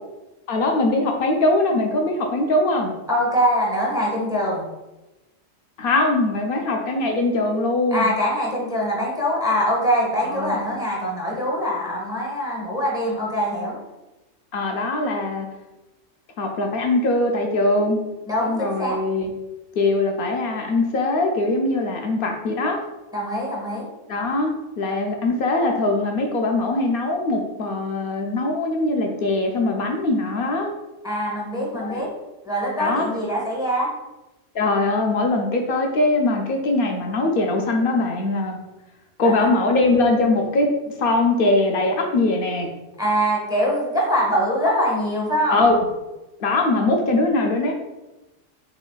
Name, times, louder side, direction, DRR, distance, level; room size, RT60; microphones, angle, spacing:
voice 1, 0.5-2.9 5.8-8.1 10.2-10.7 14.5-15.5 16.4-18.0 18.4-19.3 19.8-22.8 24.1-24.5 24.8-30.7 31.7-32.0 32.8-33.0 34.5-38.6 39.2-40.7 41.0-42.7 45.5-45.7 46.4-47.7, left 2 dB, 65° left, 2 dB, 0.6 m, -21 dB
voice 2, 3.1-4.7 7.9-13.8 18.3-19.0 23.1-23.9 31.0-32.1 32.4-33.9 39.2-39.5 43.0-45.6, equal, 5° right, -3 dB, 0.5 m, -23 dB
3.6 x 3.2 x 2.2 m, 1.0 s
omnidirectional pair, 1.3 m